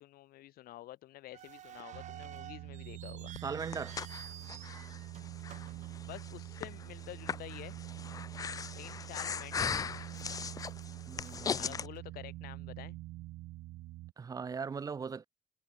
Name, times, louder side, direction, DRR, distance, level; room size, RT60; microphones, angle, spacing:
voice 1, 0.0-3.3 6.0-7.7 8.7-10.4 11.6-13.0, left 15 dB, 70° left, 5.2 m, -49 dB
sound 1, 1.3-6.7 6.9-7.0 7.8-8.0 8.5-8.6 9.2-9.8 10.1-12.6, right 11 dB, 50° right, 4.7 m, -52 dB
sound 2, 1.9-14.1, right 18 dB, 80° right, 1.3 m, -46 dB
Breathing, 3.4-11.9, left 6 dB, 20° left, 0.4 m, -39 dB
voice 2, 3.4-4.0 5.1-5.3 8.1-8.3 11.1-11.8 14.2-15.2, right 5 dB, 20° right, 0.9 m, -40 dB
cardioid pair, 160°, 16 cm